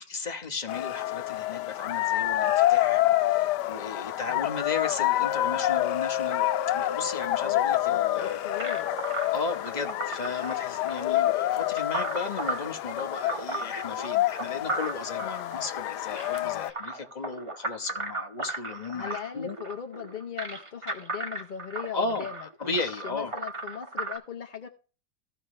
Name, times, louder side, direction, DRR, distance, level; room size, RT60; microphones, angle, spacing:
voice 1, 0.0-8.4 9.3-19.6 21.9-22.3 22.6-23.3, left 4 dB, 30° left, 1.0 m, -35 dB
sound 1, 0.7-16.7, left 14 dB, 85° left, 1.2 m, -27 dB
voice 2, 2.8-3.2 4.3-4.5 7.4-9.1 15.2-15.6 16.4-16.7 18.9-24.7, left 8 dB, 50° left, 0.5 m, -40 dB
sound 2, 8.6-24.2, right 2 dB, 20° right, 1.3 m, -36 dB
15.0 x 5.9 x 3.2 m
omnidirectional pair, 1.8 m